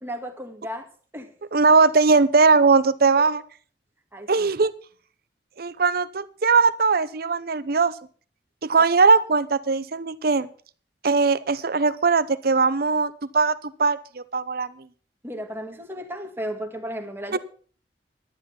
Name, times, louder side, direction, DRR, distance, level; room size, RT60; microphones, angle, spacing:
voice 1, 0.0-0.9 1.1-1.3 4.1-4.5 15.2-17.4, equal, 15° right, 4 dB, 1.9 m, -34 dB
voice 2, 1.5-3.4 4.3-4.7 5.6-7.9 8.6-10.5 11.0-13.5 13.8-14.7 17.3-17.4, right 4 dB, 60° right, 16 dB, 0.8 m, -20 dB
11.5 x 10.5 x 5.8 m, 0.43 s
head